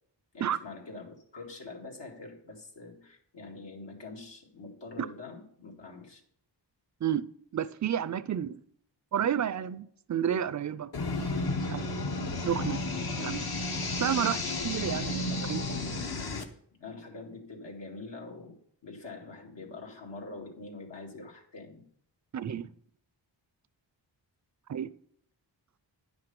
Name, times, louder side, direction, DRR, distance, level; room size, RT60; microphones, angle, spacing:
voice 1, 0.3-6.2 12.3-12.5 13.4-13.5 15.3-15.5 16.8-21.8, left 3 dB, 75° left, 2.1 m, -45 dB
voice 2, 7.5-8.6 9.1-10.9 11.2-11.3 11.7-12.0 12.4-12.8 13.2-13.5 14.0-15.6 22.3-22.7 24.7-24.9, right 9 dB, 40° right, 0.5 m, -31 dB
sound 1, 10.9-16.4, left 2 dB, 55° left, 1.1 m, -32 dB
9.8 x 5.9 x 5.3 m
wide cardioid pair, 75°, 45 cm